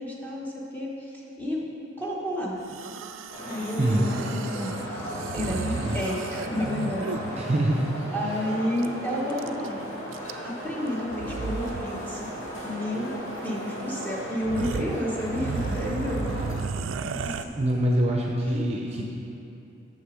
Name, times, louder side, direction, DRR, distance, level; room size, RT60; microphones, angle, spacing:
voice 1, 0.0-1.6 2.0-2.6 3.5-4.7 5.0-7.5 8.1-9.8 10.4-12.3 12.6-13.1 13.4-16.4 17.1-17.5 18.4-18.7 19.0-19.1, left 1 dB, 10° left, -4 dB, 1.1 m, -31 dB
sound 1, 2.6-7.4 8.8-8.9 9.1-9.7 10.1-10.6 11.1-11.9 12.1-12.3 13.4-13.5 14.0-14.1 14.4-17.4, right 4 dB, 70° right, 0.4 m, -34 dB
sound 2, 3.3-16.5, equal, 80° left, 2.1 m, -36 dB
voice 2, 7.4-8.1 17.5-19.0, right 1 dB, 30° right, 0 dB, 0.6 m, -24 dB
7.0 x 6.5 x 6.2 m, 2.8 s
head